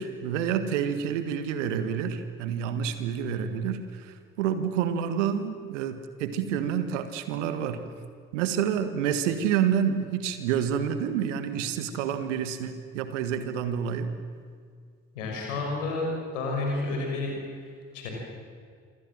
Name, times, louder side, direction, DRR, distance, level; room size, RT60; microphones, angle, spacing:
voice 1, 0.0-7.8 8.3-14.1, right 8 dB, 75° right, 10 dB, 1.8 m, -28 dB
voice 2, 15.1-16.1 16.3-17.3 17.6-18.1, left 3 dB, 80° left, -1 dB, 6.4 m, -30 dB
27.5 x 24.0 x 7.8 m, 2.1 s
figure-of-eight pair, 40°, 37 cm